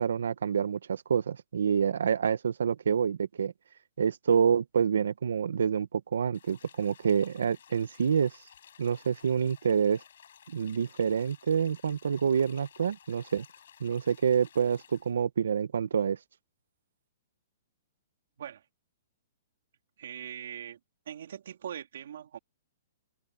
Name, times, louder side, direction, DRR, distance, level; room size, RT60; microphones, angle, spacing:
voice 1, 0.0-3.5 4.0-8.3 8.8-10.0 10.5-13.4 13.8-16.2, right 7 dB, 90° right, 1.4 m, -27 dB
sound 1, 6.3-15.1, left 9 dB, 70° left, 6.0 m, -56 dB
voice 2, 20.0-20.8 21.0-22.4, right 9 dB, 70° right, 3.3 m, -41 dB
hypercardioid pair, 160°, 0 cm